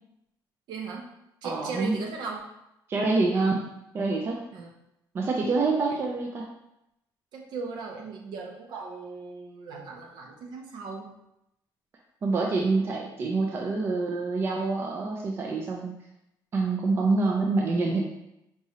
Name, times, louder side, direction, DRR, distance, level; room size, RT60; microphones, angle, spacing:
voice 1, 0.7-1.1 1.4-2.5 4.5-4.7 7.3-11.1, right 4 dB, 60° right, 1 dB, 0.7 m, -37 dB
voice 2, 1.4-2.0 2.9-3.6 3.9-4.4 5.1-6.5 12.2-15.9 16.5-18.0, right 3 dB, 30° right, 0 dB, 0.4 m, -26 dB
4.7 x 3.0 x 2.8 m, 0.84 s
cardioid pair, 170°, 8 cm